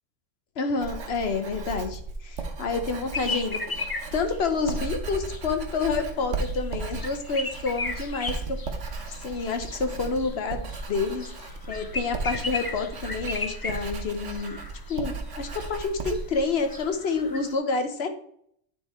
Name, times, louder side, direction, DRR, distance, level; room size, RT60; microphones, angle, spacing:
voice 1, 0.6-3.6 4.1-8.6 9.2-14.6 14.9-18.1, left 4 dB, 60° left, 7 dB, 1.1 m, -29 dB
Writing, 0.8-16.9, right 3 dB, 75° right, 1.3 m, -36 dB
sound 1, 3.1-17.6, left 3 dB, 30° left, 0.4 m, -37 dB
9.0 x 3.9 x 4.2 m, 0.66 s
omnidirectional pair, 1.3 m